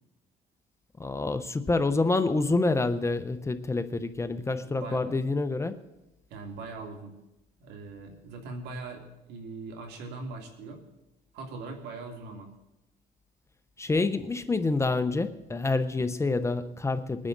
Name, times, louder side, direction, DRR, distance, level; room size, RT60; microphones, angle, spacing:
voice 1, 1.0-5.8 13.8-17.3, left 3 dB, 15° left, 0.7 m, -27 dB
voice 2, 4.6-5.2 6.3-7.1 7.6-10.8 11.3-12.5, right 3 dB, 90° right, 2.6 m, -41 dB
21.0 x 9.8 x 4.0 m
cardioid pair, 110°, 17 cm